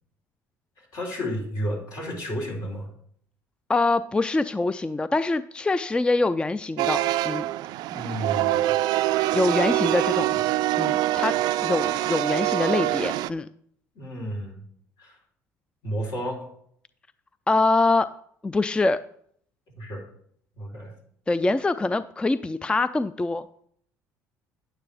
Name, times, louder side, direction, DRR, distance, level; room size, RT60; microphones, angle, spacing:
voice 1, 0.8-2.9 7.9-8.7 10.3-10.4 13.9-14.6 15.0-15.2 15.8-16.5 19.8-20.0 20.5-20.9, equal, 65° left, -2 dB, 3.9 m, -32 dB
voice 2, 3.7-7.5 9.3-10.3 10.8-11.4 11.6-13.5 17.5-18.1 18.4-19.0 21.3-23.4, left 3 dB, 15° left, 14 dB, 0.3 m, -24 dB
sound 1, 6.8-13.3, right 15 dB, 70° right, 0.3 m, -24 dB
9.8 x 8.9 x 3.4 m, 0.65 s
supercardioid pair, 80°, 7 cm